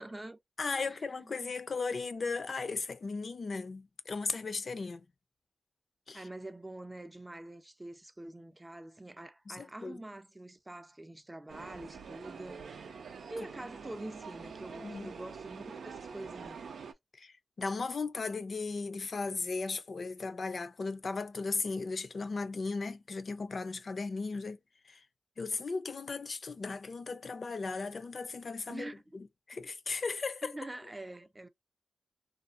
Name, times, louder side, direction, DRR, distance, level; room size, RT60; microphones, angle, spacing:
voice 1, 0.0-0.4 0.7-1.5 6.1-12.7 13.3-16.6 28.7-29.2 29.5-29.6 30.4-31.5, right 1 dB, 20° right, 0.5 m, -45 dB
voice 2, 0.6-5.0 6.1-6.2 9.5-10.0 14.8-15.1 17.2-24.6 24.9-25.0 25.4-30.6, left 4 dB, 60° left, 0.5 m, -36 dB
subway chile, 11.5-16.9, right 5 dB, 80° right, 0.5 m, -46 dB
2.6 x 2.3 x 2.4 m
cardioid pair, 50°, 0 cm